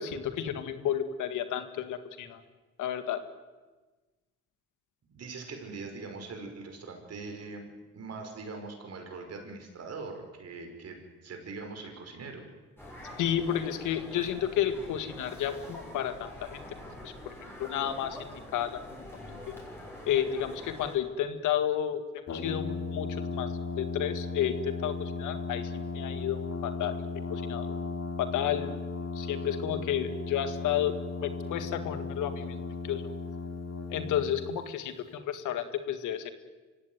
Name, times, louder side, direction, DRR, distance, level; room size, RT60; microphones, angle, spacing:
voice 1, 0.0-2.4 2.8-3.2 13.2-16.6 17.0-17.3 17.6-19.6 20.1-26.9 27.3-27.8 28.2-28.8 29.2-30.9 31.2-33.0 33.9-36.3, left 10 dB, 90° left, 10 dB, 2.0 m, -32 dB
voice 2, 5.1-7.7 7.9-12.4, right 3 dB, 55° right, 4 dB, 5.5 m, -42 dB
sound 1, 12.8-21.0, left 1 dB, 5° left, 7.4 m, -45 dB
Brass instrument, 22.3-34.5, left 3 dB, 55° left, 3.5 m, -36 dB
25.5 x 16.5 x 9.6 m, 1.3 s
cardioid pair, 90°, 30 cm